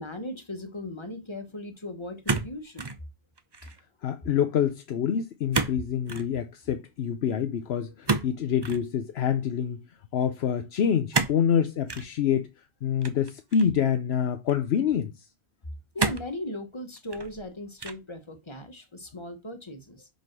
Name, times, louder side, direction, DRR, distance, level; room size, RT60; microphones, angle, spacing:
voice 1, 0.0-2.9 15.9-20.1, left 1 dB, 25° left, 1.2 m, -38 dB
sound 1, 2.3-3.0 3.4-3.8 5.5-5.8 6.1-6.3 8.1-8.8 11.1-11.4 11.9-12.1 13.0-13.8 14.5-14.6 16.0-16.4 17.0-17.4 17.8-18.2, right 4 dB, 30° right, 0.6 m, -29 dB
voice 2, 4.0-9.8 10.1-12.5 12.8-15.1, left 8 dB, 80° left, 0.9 m, -26 dB
5.5 x 5.3 x 6.0 m
omnidirectional pair, 1.1 m